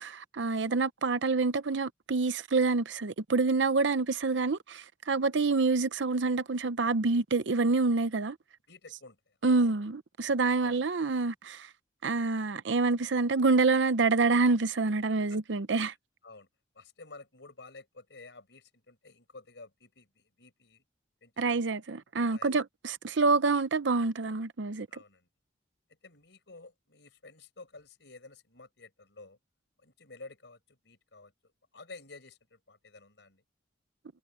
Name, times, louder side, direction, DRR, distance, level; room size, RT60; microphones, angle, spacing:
voice 1, 0.0-8.4 9.4-11.7 12.0-15.9 21.4-24.9, right 3 dB, 75° right, 0.7 m, -27 dB
voice 2, 8.7-9.7 10.6-10.8 15.3-15.4 16.2-16.5 16.7-20.8 21.2-21.6 22.3-22.6 24.9-25.3 26.0-29.4 29.8-31.3 31.7-33.4, left 3 dB, 70° left, 5.0 m, -52 dB
head